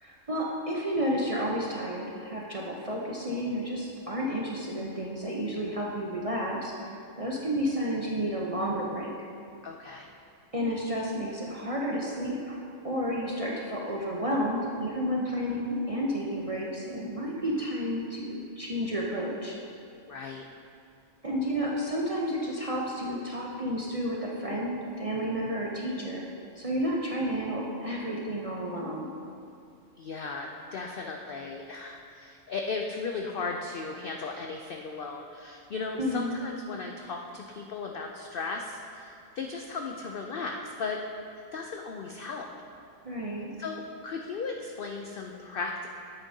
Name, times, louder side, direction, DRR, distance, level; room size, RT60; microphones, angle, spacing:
voice 1, 0.0-6.7 7.2-9.3 10.5-19.5 21.2-26.2 26.6-29.1 36.0-36.3 43.0-43.5, equal, 40° right, -3 dB, 0.5 m, -31 dB
voice 2, 9.6-10.1 20.1-20.4 30.0-41.0 41.5-42.5 43.6-45.9, left 4 dB, 75° left, 2 dB, 0.5 m, -36 dB
9.7 x 8.1 x 2.7 m, 2.5 s
omnidirectional pair, 1.5 m